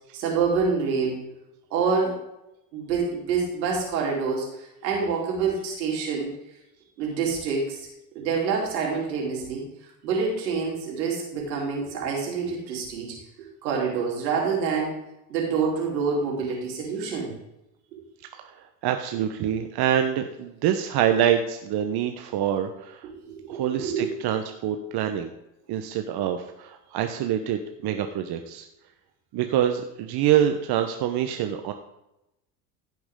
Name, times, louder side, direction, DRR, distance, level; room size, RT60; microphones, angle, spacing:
voice 1, 0.1-1.3 1.7-2.2 2.7-4.5 4.8-6.3 7.0-7.8 8.2-9.6 10.0-13.2 13.6-15.0 15.3-17.3 17.9-18.0 23.1-24.1, right 5 dB, 80° right, -2 dB, 3.8 m, -26 dB
voice 2, 18.3-23.1 23.5-25.3 25.7-28.6 29.3-31.7, right 10 dB, 50° right, 6 dB, 1.1 m, -26 dB
16.0 x 6.0 x 3.8 m, 0.87 s
hypercardioid pair, 75°, 50 cm